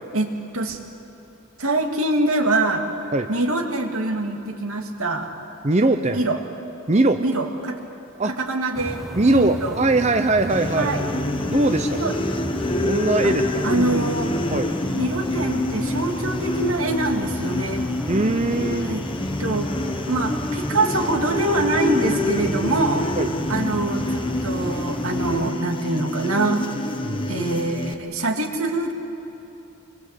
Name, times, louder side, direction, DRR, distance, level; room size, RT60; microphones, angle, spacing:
voice 1, 0.1-0.8 1.6-5.3 6.1-6.4 7.2-7.8 8.2-9.8 10.8-11.0 11.9-12.2 13.2-13.4 13.6-14.3 15.0-17.9 18.8-19.0 19.4-19.7 20.1-23.1 23.5-26.6 27.3-28.9, right 2 dB, 80° right, 3 dB, 2.3 m, -24 dB
voice 2, 5.6-6.2 6.9-7.2 8.2-8.3 9.1-10.9 11.5-12.0 12.7-13.4 14.5-14.7 18.1-18.9 23.2-23.3 27.0-27.4, right 2 dB, 30° right, 7 dB, 0.7 m, -21 dB
sound 1, 8.7-25.5, equal, ahead, 0.9 m, -34 dB
sound 2, 10.5-27.9, left 2 dB, 25° left, 1.0 m, -27 dB
26.5 x 22.0 x 8.3 m, 3.0 s
head